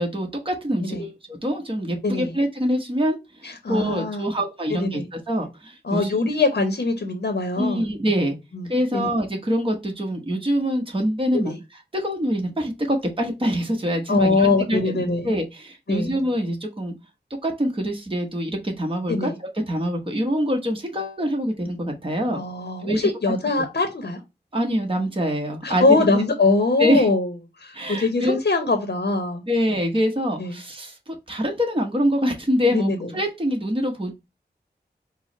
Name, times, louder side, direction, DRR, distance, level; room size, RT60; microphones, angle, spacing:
voice 1, 0.0-6.2 7.6-8.3 8.7-16.9 17.4-22.4 22.8-23.1 24.5-26.1 26.8-27.1 27.7-28.4 29.5-34.1, equal, 30° right, 0.9 m, -25 dB
voice 2, 3.4-4.3 4.7-5.1 5.8-7.9 8.5-9.1 11.4-11.6 14.1-15.3 15.9-16.2 19.1-19.3 22.3-24.2 25.6-27.3 27.6-29.4 30.4-30.5 32.7-33.1, left 3 dB, 65° left, 0.7 m, -22 dB
4.5 x 2.0 x 4.2 m
wide cardioid pair, 50°, 18 cm